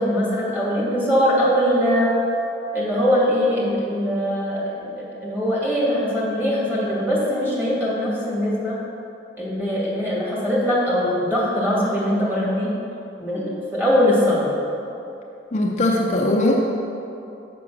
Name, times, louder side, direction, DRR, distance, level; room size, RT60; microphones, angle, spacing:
voice 1, 0.0-2.1 2.7-8.8 9.4-12.7 13.2-14.5, equal, 10° right, -6 dB, 2.2 m, -21 dB
voice 2, 15.5-16.6, left 1 dB, 40° left, -1 dB, 0.7 m, -20 dB
7.2 x 6.1 x 6.2 m, 2.8 s
head